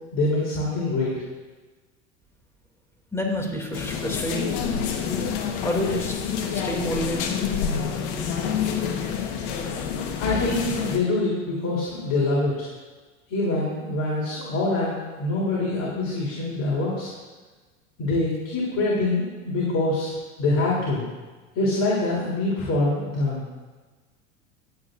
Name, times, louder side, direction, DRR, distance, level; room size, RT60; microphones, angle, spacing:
voice 1, 0.1-1.1 10.2-12.7 13.3-17.1 18.0-20.1 20.4-21.1 21.5-23.4, left 2 dB, 40° left, -6 dB, 3.8 m, -25 dB
voice 2, 3.1-4.5 5.6-6.1 6.5-7.4, left 1 dB, 5° left, 1 dB, 2.7 m, -28 dB
sound 1, 3.7-11.0, left 7 dB, 55° left, 1.5 m, -27 dB
25.0 x 8.5 x 2.7 m, 1.3 s
hypercardioid pair, 85°, 40 cm